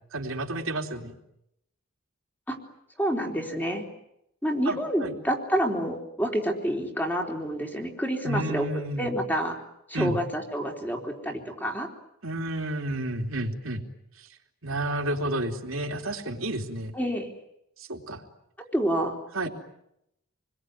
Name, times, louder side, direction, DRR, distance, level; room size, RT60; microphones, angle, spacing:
voice 1, 0.1-1.1 4.6-5.1 8.2-9.1 9.9-10.2 12.2-13.8 14.6-16.9 17.8-18.2 19.3-19.5, right 1 dB, 80° right, 3 dB, 3.2 m, -31 dB
voice 2, 3.0-3.8 4.4-8.7 9.0-9.6 9.9-11.9 16.9-17.3 18.7-19.2, equal, 10° left, 2 dB, 3.7 m, -28 dB
28.0 x 21.5 x 9.4 m, 0.82 s
head